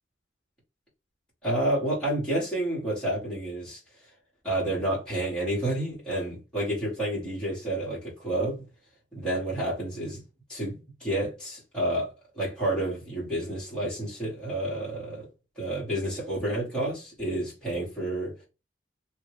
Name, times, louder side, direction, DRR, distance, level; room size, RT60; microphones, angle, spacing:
voice 1, 1.4-3.8 4.4-8.6 9.1-10.2 10.5-15.3 15.6-18.4, right 1 dB, 5° left, 1.5 m, -30 dB
3.0 x 2.6 x 3.0 m
head